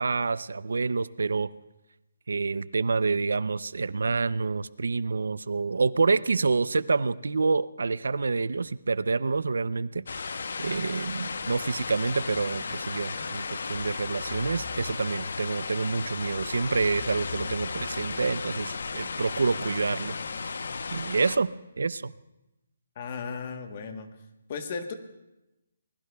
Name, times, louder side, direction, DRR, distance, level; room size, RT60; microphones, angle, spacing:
voice 1, 0.0-1.5 2.3-10.3 10.6-20.2 20.9-21.5 21.8-22.1, right 4 dB, 75° right, 17 dB, 0.5 m, -27 dB
sound 1, 10.1-21.4, left 4 dB, 60° left, 0.8 m, -35 dB
voice 2, 23.0-24.1 24.5-24.9, left 5 dB, 25° left, 7 dB, 1.1 m, -35 dB
29.0 x 21.0 x 2.3 m, 0.94 s
hypercardioid pair, 180°, 0 cm